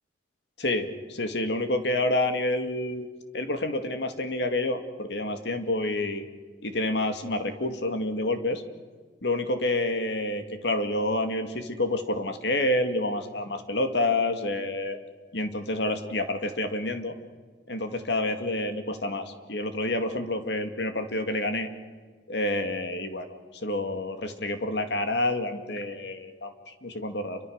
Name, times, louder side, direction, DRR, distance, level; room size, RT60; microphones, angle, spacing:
voice 1, 0.6-3.1 3.3-6.2 6.6-8.6 9.2-15.0 15.3-17.1 17.7-21.7 22.3-27.4, left 2 dB, 65° left, 7 dB, 2.3 m, -28 dB
29.0 x 24.0 x 6.6 m, 1.4 s
head